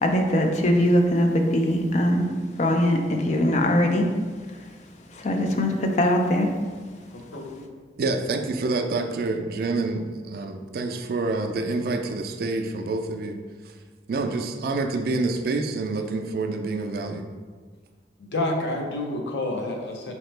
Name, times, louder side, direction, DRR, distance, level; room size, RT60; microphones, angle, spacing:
voice 1, 0.0-2.3 2.6-4.1 5.2-6.5, left 1 dB, 40° left, 4 dB, 0.4 m, -21 dB
voice 2, 7.1-7.7 18.2-20.1, left 2 dB, 80° left, 2 dB, 0.6 m, -29 dB
voice 3, 8.0-13.4 14.1-17.3, right 3 dB, 55° right, 6 dB, 0.3 m, -27 dB
4.2 x 2.9 x 3.2 m, 1.5 s
head